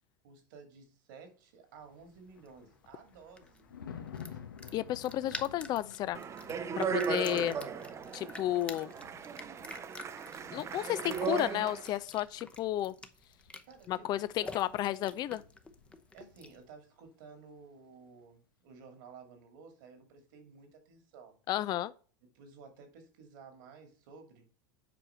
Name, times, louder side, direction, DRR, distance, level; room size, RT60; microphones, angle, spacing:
voice 1, 0.2-3.7 4.3-4.4 13.7-15.2 16.1-21.4 22.3-24.5, right 5 dB, 70° right, 2.4 m, -54 dB
Thunder, 1.9-16.5 16.8-17.1, left 7 dB, 90° left, 1.0 m, -53 dB
sound 1, 1.9-16.7, left 2 dB, 10° left, 0.8 m, -50 dB
voice 2, 4.7-6.2 6.8-7.6 8.1-8.9 10.5-12.9 13.9-15.4 21.5-21.9, left 13 dB, 40° left, 0.5 m, -32 dB
Speech, 6.1-12.0, right 7 dB, 25° right, 0.6 m, -37 dB
7.7 x 4.8 x 4.4 m
hypercardioid pair, 100°, 11 cm